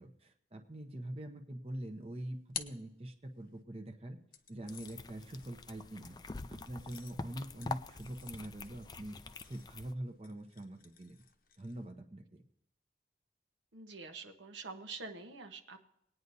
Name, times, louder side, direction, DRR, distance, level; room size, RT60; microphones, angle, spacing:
voice 1, 0.0-4.2 4.5-6.2 6.5-9.2 9.4-11.2 11.6-12.4, right 1 dB, 30° right, 4 dB, 0.8 m, -44 dB
sound 1, 1.8-3.6 4.3-11.9, left 9 dB, 50° left, 0.8 m, -52 dB
sound 2, 4.7-9.9, left 3 dB, 20° left, 0.4 m, -46 dB
voice 2, 13.7-15.8, right 4 dB, 85° right, 5 dB, 1.1 m, -46 dB
21.0 x 9.4 x 2.7 m, 0.76 s
head